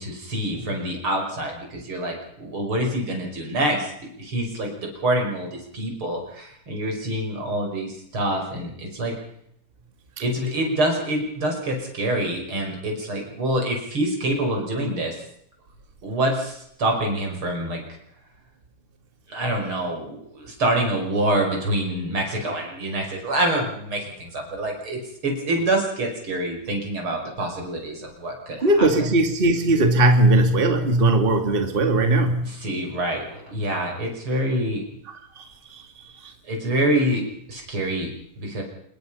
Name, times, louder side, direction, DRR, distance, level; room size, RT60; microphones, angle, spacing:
voice 1, 0.0-3.9 4.2-5.5 5.7-9.2 10.2-15.1 16.0-17.8 19.3-28.9 32.4-34.8 36.5-37.2 37.5-38.6, right 1 dB, 40° right, 2 dB, 6.2 m, -26 dB
voice 2, 28.6-32.4, right 2 dB, 20° right, 5 dB, 2.2 m, -18 dB
26.0 x 21.5 x 5.6 m, 0.72 s
omnidirectional pair, 3.7 m